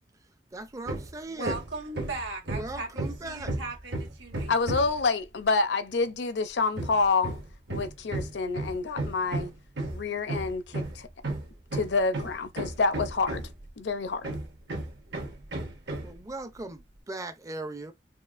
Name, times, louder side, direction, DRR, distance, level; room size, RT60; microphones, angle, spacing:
voice 1, 0.5-1.6 2.5-3.5 16.0-17.9, right 2 dB, 20° right, 0.4 m, -38 dB
Hammer, 0.8-1.1 1.4-5.0 6.7-13.7 14.2-16.2, right 2 dB, 70° right, 1.1 m, -34 dB
voice 2, 1.3-4.8, right 2 dB, 85° right, 1.6 m, -38 dB
voice 3, 4.5-7.4 7.7-9.5 9.9-11.1 11.7-13.4 13.8-14.3, left 4 dB, 70° left, 0.6 m, -28 dB
5.6 x 2.4 x 2.4 m
head